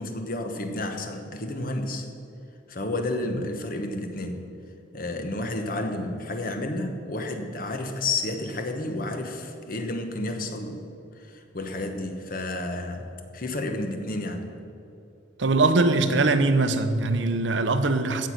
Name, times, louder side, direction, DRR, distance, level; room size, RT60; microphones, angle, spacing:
voice 1, 0.0-2.1 2.7-4.4 4.9-10.9 11.2-14.5, left 2 dB, 50° left, 5 dB, 1.1 m, -31 dB
voice 2, 15.4-18.3, right 3 dB, 85° right, 9 dB, 0.8 m, -22 dB
15.5 x 6.5 x 5.8 m, 2.7 s
head